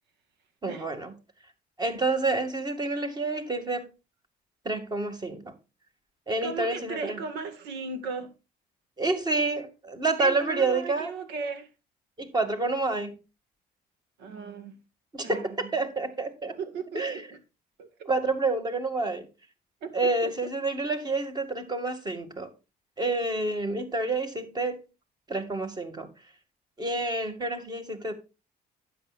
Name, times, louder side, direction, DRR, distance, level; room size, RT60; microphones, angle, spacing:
voice 1, 0.6-1.1 1.8-3.9 4.6-5.5 6.3-7.2 9.0-11.1 12.2-13.1 15.1-16.5 16.9-17.2 18.1-19.3 19.9-22.5 23.0-24.8 25.3-26.1 26.8-28.1, right 3 dB, 25° right, 2.3 m, -28 dB
voice 2, 6.4-8.3 10.2-11.7 14.2-14.8 15.2-15.7 16.6-17.4 17.8-18.1 19.8-20.3, right 5 dB, 85° right, 2.0 m, -36 dB
12.0 x 8.6 x 2.5 m
cardioid pair, 110°, 17 cm